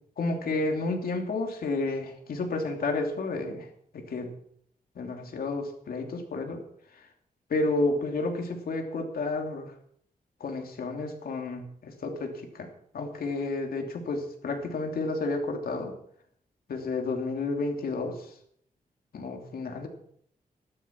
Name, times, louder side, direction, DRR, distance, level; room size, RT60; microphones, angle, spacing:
voice 1, 0.2-3.7 3.9-4.3 5.0-6.6 7.5-9.7 10.4-12.7 12.9-15.9 16.7-18.3 19.1-19.9, left 3 dB, 90° left, 3 dB, 2.8 m, -31 dB
14.0 x 12.0 x 6.0 m, 0.66 s
wide cardioid pair, 120°, 15 cm